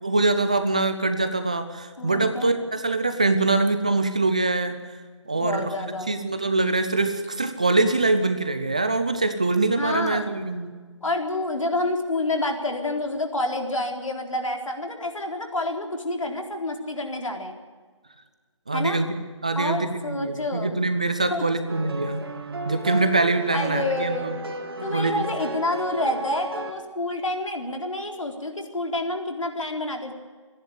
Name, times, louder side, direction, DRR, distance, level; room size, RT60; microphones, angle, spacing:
voice 1, 0.0-4.8 5.3-10.7 18.7-19.1 19.4-22.2 22.6-24.3 24.9-25.2, right 2 dB, 15° right, 9 dB, 0.5 m, -24 dB
voice 2, 2.0-2.5 5.3-6.1 9.8-10.3 11.0-17.5 18.7-19.0 19.6-20.8 21.3-21.4 23.5-24.3 24.8-30.1, left 2 dB, 90° left, 4 dB, 4.2 m, -28 dB
sound 1, 21.7-26.7, right 2 dB, 50° right, 2.3 m, -33 dB
27.0 x 11.0 x 9.6 m, 1.5 s
figure-of-eight pair, 175°, 16 cm